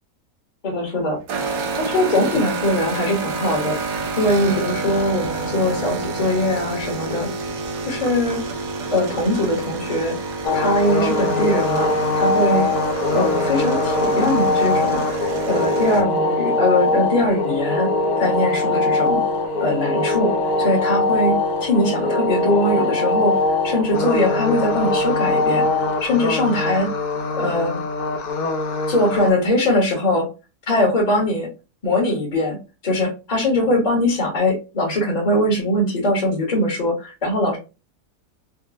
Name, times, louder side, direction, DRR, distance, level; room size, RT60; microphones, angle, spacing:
voice 1, 0.6-1.2 1.8-7.3 7.8-8.4 8.9-10.2 10.5-12.7 13.1-15.2 15.5-17.9 18.2-19.2 19.6-20.3 20.6-25.7 26.0-26.9 27.3-27.8 28.9-30.3 30.7-31.5 31.8-37.6, left 1 dB, 35° left, -1 dB, 0.8 m, -21 dB
sound 1, 1.3-16.0, right 4 dB, 75° right, 1.1 m, -28 dB
sound 2, 10.4-29.3, left 2 dB, 75° left, 1.2 m, -21 dB
3.9 x 2.1 x 2.4 m, 0.29 s
omnidirectional pair, 1.6 m